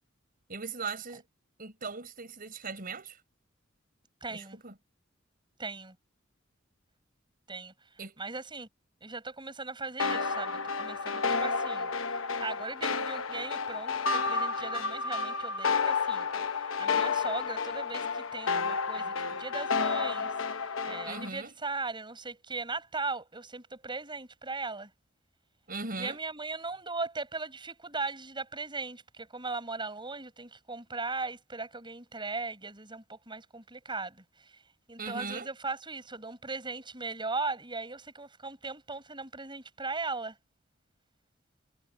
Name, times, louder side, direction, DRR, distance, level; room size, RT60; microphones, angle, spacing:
voice 1, 0.5-1.2 1.6-3.2 4.3-4.7 8.0-8.1 21.0-21.5 25.7-26.2 35.0-35.5, right 4 dB, 45° right, 5.4 m, -39 dB
voice 2, 4.2-4.6 5.6-6.0 7.5-8.7 9.0-11.9 12.2-24.9 25.9-34.5 34.9-40.4, right 3 dB, 25° right, 7.3 m, -38 dB
sound 1, 10.0-21.3, left 5 dB, 75° left, 1.1 m, -31 dB
head